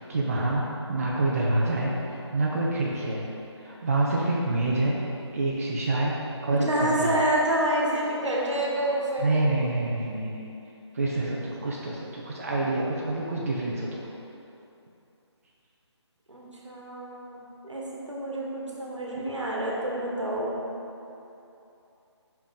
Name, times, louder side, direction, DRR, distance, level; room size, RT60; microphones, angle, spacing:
voice 1, 0.0-2.0 2.3-3.2 3.6-5.0 5.3-6.2 6.4-7.1 9.2-10.4 10.9-14.1, right 2 dB, 30° right, -4 dB, 0.5 m, -27 dB
voice 2, 6.5-9.3 16.3-20.6, right 1 dB, 85° right, -3 dB, 1.4 m, -28 dB
5.8 x 5.0 x 3.6 m, 2.8 s
figure-of-eight pair, 160°, 15 cm